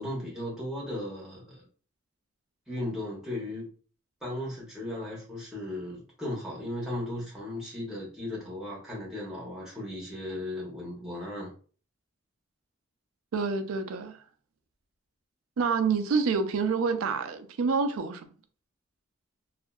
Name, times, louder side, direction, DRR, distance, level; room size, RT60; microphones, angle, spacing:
voice 1, 0.0-1.6 2.7-3.7 4.2-11.5, left 1 dB, 5° right, 1.0 m, -36 dB
voice 2, 13.3-14.2 15.6-18.3, right 5 dB, 85° right, 0.4 m, -27 dB
2.7 x 2.4 x 2.2 m
head